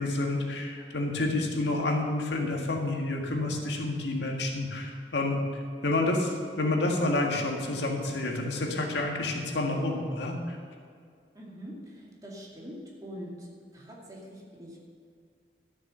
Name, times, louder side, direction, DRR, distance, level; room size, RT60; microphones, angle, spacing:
voice 1, 0.0-5.4 5.8-10.6, left 2 dB, 80° left, 1 dB, 1.8 m, -29 dB
voice 2, 11.3-12.8 13.0-14.8, equal, 20° right, -4 dB, 2.4 m, -44 dB
12.5 x 6.7 x 6.7 m, 2.2 s
head